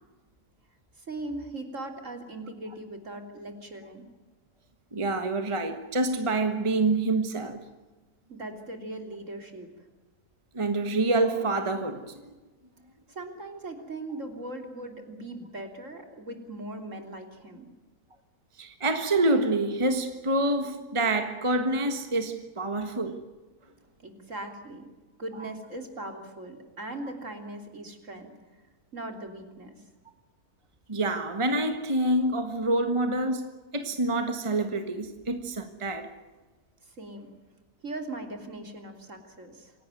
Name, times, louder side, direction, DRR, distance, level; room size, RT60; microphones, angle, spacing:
voice 1, 1.0-4.1 8.3-9.7 13.1-17.7 24.0-24.9 25.2-28.3 28.9-29.8 36.8-37.3 37.8-39.7, right 2 dB, 55° right, 3.7 m, -39 dB
voice 2, 4.9-7.7 10.5-12.3 18.6-23.2 30.9-36.1, right 2 dB, 20° right, 1.5 m, -27 dB
27.0 x 17.5 x 9.2 m
omnidirectional pair, 1.6 m